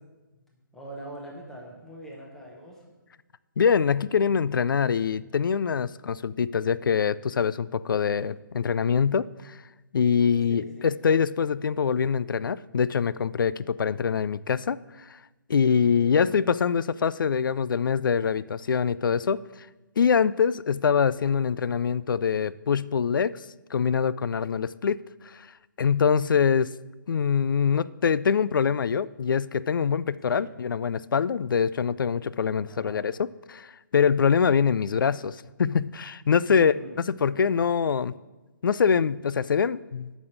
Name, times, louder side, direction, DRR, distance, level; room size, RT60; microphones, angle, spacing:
voice 1, 0.5-2.9 10.5-10.9 30.3-30.5 32.6-33.0 36.5-37.0, right 1 dB, 5° left, -2 dB, 0.9 m, -43 dB
voice 2, 3.6-9.6 9.9-14.8 15.5-19.7 20.0-23.4 23.7-25.5 25.8-26.7 27.1-36.7 37.2-38.1 38.6-40.2, left 6 dB, 75° left, 19 dB, 0.4 m, -24 dB
7.3 x 6.2 x 7.9 m, 1.1 s
hypercardioid pair, 170°, 11 cm